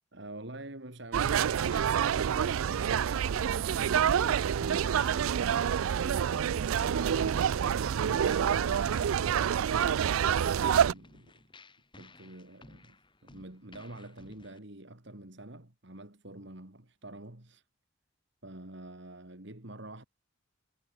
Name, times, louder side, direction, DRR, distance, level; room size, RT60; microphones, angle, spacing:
voice 1, 0.1-5.1 5.8-9.6 10.2-11.4 12.0-17.6 18.4-20.1, right 1 dB, 55° right, 2.5 m, -47 dB
sound 1, 1.1-10.9, right 8 dB, 75° right, 0.4 m, -27 dB
sound 2, 1.2-14.6, left 2 dB, 25° left, 4.9 m, -56 dB
sound 3, 2.1-9.0, equal, 20° right, 3.6 m, -51 dB
head